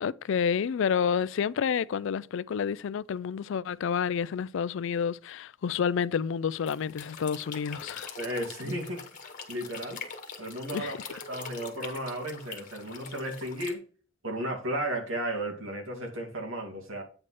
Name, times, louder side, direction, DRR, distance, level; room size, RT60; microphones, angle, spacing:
voice 1, 0.0-8.1 10.7-10.9, left 7 dB, 65° left, 0.4 m, -29 dB
sound 1, 6.6-13.7, left 6 dB, 40° left, 1.5 m, -43 dB
voice 2, 8.2-9.1 9.5-10.0 10.4-13.8 14.2-17.0, right 1 dB, 80° right, 2.2 m, -34 dB
8.8 x 4.2 x 4.8 m
head